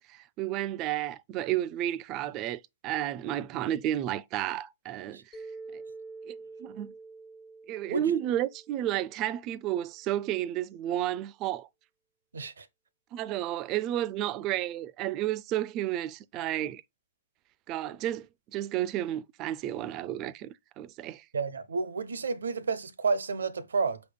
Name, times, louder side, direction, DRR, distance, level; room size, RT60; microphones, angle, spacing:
voice 1, 0.1-5.2 5.7-5.8 6.3-6.9 7.7-11.7 13.1-16.8 17.7-18.3 18.5-21.2, right 12 dB, 35° right, 0.3 m, -32 dB
Mallet percussion, 5.3-9.5, right 3 dB, 20° left, 0.8 m, -47 dB
voice 2, 12.3-12.7 21.3-24.0, right 4 dB, 85° right, 0.7 m, -30 dB
6.2 x 3.5 x 2.2 m
hypercardioid pair, 125°, 0 cm